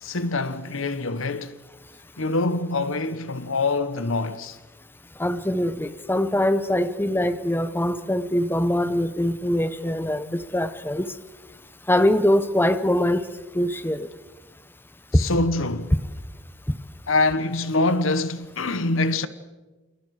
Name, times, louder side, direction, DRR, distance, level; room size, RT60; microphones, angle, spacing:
voice 1, 0.0-1.6 2.2-4.6 10.3-10.4 15.1-15.9 17.1-19.3, left 2 dB, 90° left, 1.2 m, -25 dB
voice 2, 5.2-11.0 11.9-13.2 13.5-14.1 15.1-15.2 16.7-16.8, left 1 dB, 10° left, 0.9 m, -23 dB
28.5 x 27.5 x 4.9 m
head